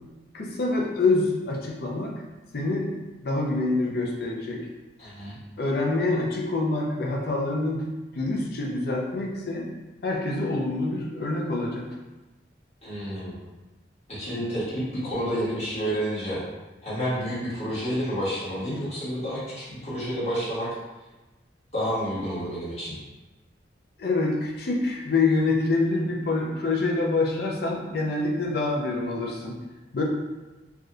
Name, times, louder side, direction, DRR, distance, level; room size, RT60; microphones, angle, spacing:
voice 1, 0.3-2.2 2.5-3.0 3.2-4.7 5.0-5.1 5.6-9.7 10.0-11.9 24.0-29.6 29.9-30.0, left 3 dB, 55° left, -1 dB, 0.5 m, -26 dB
voice 2, 5.0-5.4 12.8-13.3 14.1-16.4 16.8-20.7 21.7-22.9, equal, 35° left, -11 dB, 1.4 m, -29 dB
3.4 x 2.6 x 2.4 m, 1.1 s
head